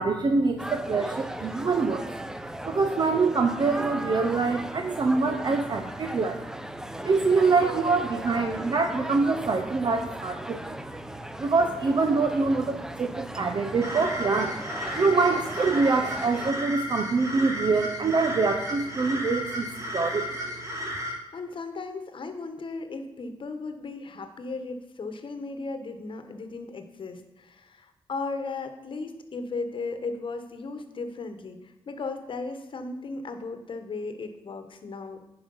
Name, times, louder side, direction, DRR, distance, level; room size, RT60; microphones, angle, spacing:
voice 1, 0.0-2.1 2.6-6.4 7.0-10.8 11.4-14.6 15.0-19.7 19.9-20.5, right 4 dB, 45° right, 5 dB, 0.7 m, -25 dB
sound 1, 0.6-16.5, right 1 dB, 5° right, 0.5 m, -37 dB
sound 2, 13.8-21.2, equal, 30° right, 2.2 m, -34 dB
voice 2, 21.3-35.3, left 3 dB, 60° left, 8 dB, 1.1 m, -36 dB
10.0 x 4.9 x 5.5 m, 1.0 s
cardioid pair, 70°, 10 cm